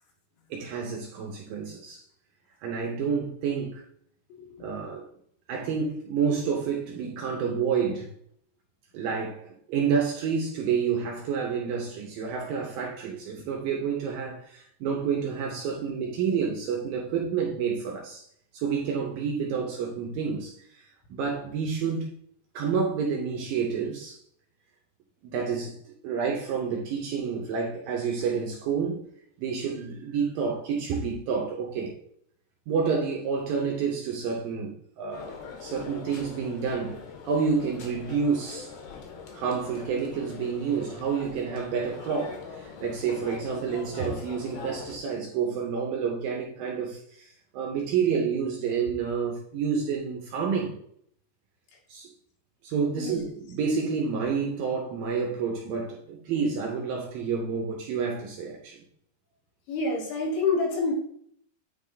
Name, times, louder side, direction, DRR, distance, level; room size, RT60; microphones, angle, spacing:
voice 1, 0.5-2.0 2.6-3.8 4.6-5.1 5.5-8.1 8.9-18.3 18.5-20.5 21.1-22.1 22.5-24.2 25.2-25.7 26.0-29.0 29.4-31.9 32.7-35.4 35.6-38.7 39.3-47.3 47.5-50.8 51.9-52.1 52.6-58.8, right 6 dB, 75° right, 2.3 m, -29 dB
sound 1, 35.1-45.0, left 5 dB, 70° left, 2.6 m, -42 dB
voice 2, 53.0-53.3 59.7-60.9, left 3 dB, 85° left, 4.1 m, -27 dB
9.2 x 3.6 x 4.0 m
omnidirectional pair, 5.0 m